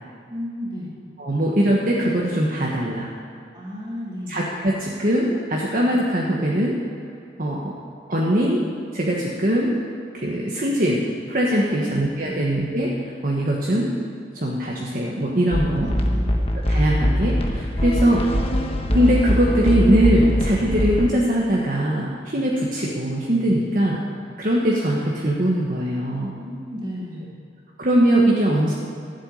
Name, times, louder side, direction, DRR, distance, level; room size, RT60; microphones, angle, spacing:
voice 1, 0.3-0.9 3.5-4.4 11.6-11.9 12.2-12.4 15.8-16.4 26.4-27.3, equal, 25° right, -4 dB, 2.8 m, -33 dB
voice 2, 1.2-3.1 4.3-6.8 7.4-7.7 8.1-8.6 8.9-9.7 10.1-11.0 11.3-12.9 13.2-13.9 14.3-15.9 16.7-18.2 18.9-24.0 24.4-26.3 27.8-28.7, right 1 dB, 45° right, -3 dB, 1.4 m, -21 dB
sound 1, 15.5-21.1, equal, 30° left, 1.2 m, -22 dB
13.0 x 8.1 x 9.4 m, 2.4 s
head